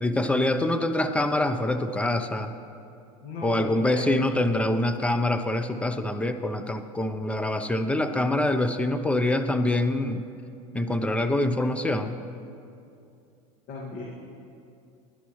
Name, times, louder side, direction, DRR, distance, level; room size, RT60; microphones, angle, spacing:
voice 1, 0.0-2.5 3.4-10.2 10.7-12.2, left 1 dB, 5° left, 9 dB, 0.7 m, -25 dB
voice 2, 3.2-4.2 13.7-14.0, left 3 dB, 55° left, -3 dB, 2.1 m, -36 dB
20.0 x 11.5 x 3.2 m, 2.6 s
supercardioid pair, 110°, 18 cm